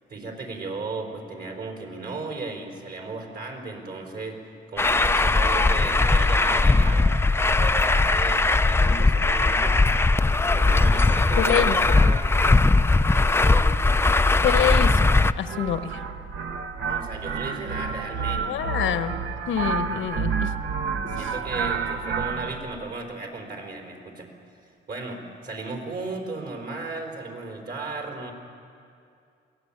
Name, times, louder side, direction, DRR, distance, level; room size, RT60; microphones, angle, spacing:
voice 1, 0.1-4.4 4.7-7.1 7.6-9.8 10.5-12.2 13.4-13.8 16.7-18.5 21.1-24.3 24.9-28.3, right 3 dB, 50° right, 2 dB, 4.8 m, -35 dB
Truck, 4.8-15.3, left 3 dB, 10° left, 0.5 m, -19 dB
voice 2, 11.4-11.8 14.4-15.9 18.4-19.2 19.5-20.5, left 9 dB, 80° left, 9 dB, 1.2 m, -26 dB
sound 1, 15.5-22.7, right 5 dB, 75° right, 1.4 m, -29 dB
22.5 x 17.0 x 8.9 m, 2.5 s
cardioid pair, 90°, 20 cm